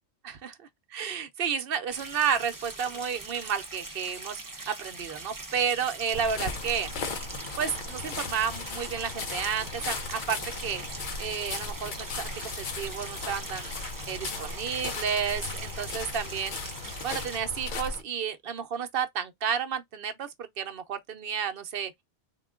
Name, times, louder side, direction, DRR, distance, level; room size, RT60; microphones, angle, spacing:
voice 1, 0.2-6.9 7.6-10.8 11.2-13.7 14.1-16.7 17.0-22.0, right 7 dB, 60° right, 0.8 m, -31 dB
sound 1, 1.9-17.4, right 2 dB, 25° right, 0.6 m, -42 dB
sound 2, 6.1-18.0, left 4 dB, 50° left, 0.7 m, -37 dB
3.7 x 2.3 x 3.5 m
omnidirectional pair, 1.1 m